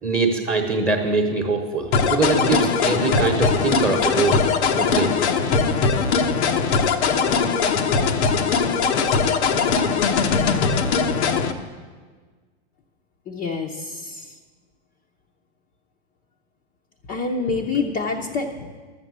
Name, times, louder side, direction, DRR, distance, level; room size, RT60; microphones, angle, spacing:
voice 1, 0.0-4.5 4.8-5.1, right 4 dB, 10° right, -1 dB, 1.1 m, -23 dB
sound 1, 1.9-11.5, left 5 dB, 80° left, 1.2 m, -20 dB
voice 2, 13.3-14.3 17.1-18.8, left 4 dB, 25° left, 0 dB, 0.8 m, -27 dB
12.5 x 7.4 x 8.1 m, 1.5 s
supercardioid pair, 145°, 33 cm